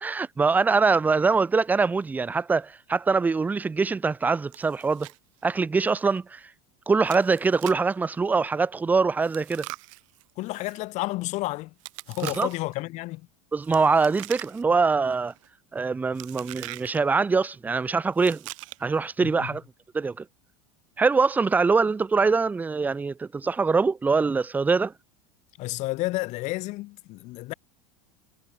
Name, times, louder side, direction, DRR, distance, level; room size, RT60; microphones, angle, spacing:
voice 1, 0.0-5.1 5.4-6.4 6.9-9.7 12.2-12.5 13.5-15.3 15.7-18.4 18.8-19.6 19.9-20.2 21.0-24.9, right 4 dB, 10° right, 0.6 m, -23 dB
Chewing mastication, 4.5-5.2 5.5-5.6 6.1-6.2 7.1-7.9 9.2-10.8 11.8-12.7 13.6-14.8 15.1-15.5 16.2-17.0 18.1-19.0, right 23 dB, 75° right, 1.4 m, -42 dB
voice 2, 10.4-11.7 12.1-13.3 19.2-19.5 25.6-27.5, left 20 dB, 45° left, 1.1 m, -31 dB
supercardioid pair, 145°, 17 cm